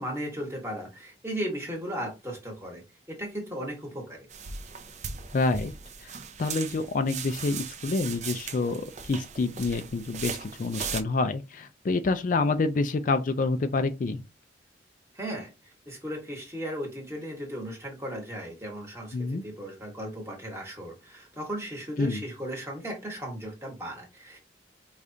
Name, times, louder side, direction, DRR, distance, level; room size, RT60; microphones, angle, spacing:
voice 1, 0.0-2.8 3.1-4.3 15.1-24.4, equal, 15° right, 1.3 m, -36 dB
sound 1, 4.3-11.0, right 6 dB, 40° right, 0.5 m, -38 dB
voice 2, 5.3-5.7 6.0-14.2 19.1-19.4 22.0-22.2, left 3 dB, 45° left, 0.4 m, -28 dB
4.9 x 2.4 x 2.7 m
head